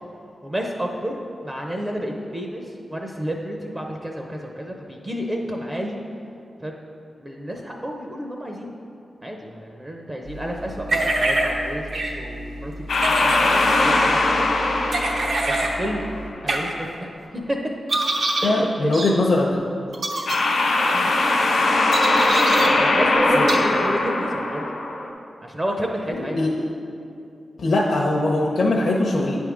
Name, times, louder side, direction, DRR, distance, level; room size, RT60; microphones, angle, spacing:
voice 1, 0.4-6.0 6.6-6.7 7.2-8.7 9.2-14.5 15.4-16.0 16.4-17.6 18.4-18.9 20.9-21.1 22.6-24.7 25.4-26.4, equal, 20° right, 1 dB, 0.5 m, -30 dB
sound 1, 10.2-16.3, equal, 90° right, 1.6 m, -36 dB
sound 2, 10.9-11.5 11.9-12.1 12.9-13.4 14.9-15.7 16.5-16.6 17.9-18.5 18.9-19.1 19.9-20.4 21.9-22.7 23.5-23.6, right 2 dB, 70° right, 0.8 m, -24 dB
sound 3, 12.9-16.2 20.3-25.1, left 2 dB, 80° left, 1.0 m, -20 dB
voice 2, 18.4-19.6 23.3-23.5 26.2-26.6 27.6-29.4, left 2 dB, 60° left, -2 dB, 0.6 m, -21 dB
9.0 x 3.5 x 6.1 m, 2.6 s
wide cardioid pair, 170°, 0 cm